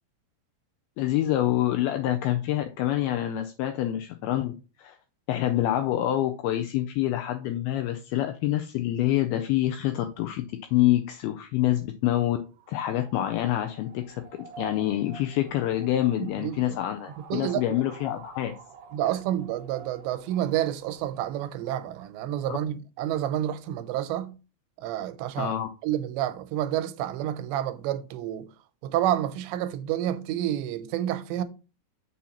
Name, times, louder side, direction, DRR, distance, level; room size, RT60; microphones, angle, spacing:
voice 1, 1.0-4.5 4.8-5.0 5.3-10.4 10.7-12.4 12.7-18.5 22.5-22.6 25.4-25.7, left 13 dB, 85° left, 2.2 m, -26 dB
sound 1, 12.4-22.2, right 6 dB, 70° right, 2.4 m, -50 dB
voice 2, 16.2-16.8 17.3-17.6 18.9-24.3 24.8-25.5 25.8-28.5 28.8-31.4, right 12 dB, 90° right, 2.9 m, -29 dB
7.0 x 6.2 x 2.9 m
omnidirectional pair, 5.0 m